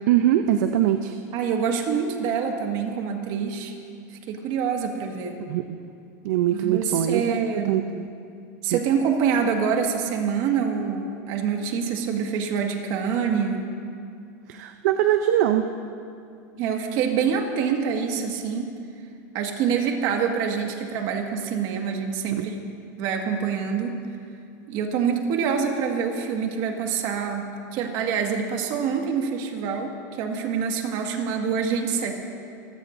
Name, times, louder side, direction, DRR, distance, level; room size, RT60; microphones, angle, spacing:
voice 1, 0.1-1.1 5.5-5.8 6.2-7.3 7.6-8.0 8.7-8.8 14.5-15.7 22.4-22.5, right 11 dB, 65° right, 7 dB, 0.6 m, -22 dB
voice 2, 1.3-3.8 4.1-5.4 6.5-7.8 8.6-13.6 16.6-18.7 19.3-22.6 23.0-24.0 24.7-27.5 27.7-32.2, right 6 dB, 45° right, 2 dB, 1.8 m, -26 dB
24.5 x 16.5 x 2.7 m, 2.4 s
supercardioid pair, 150°, 10 cm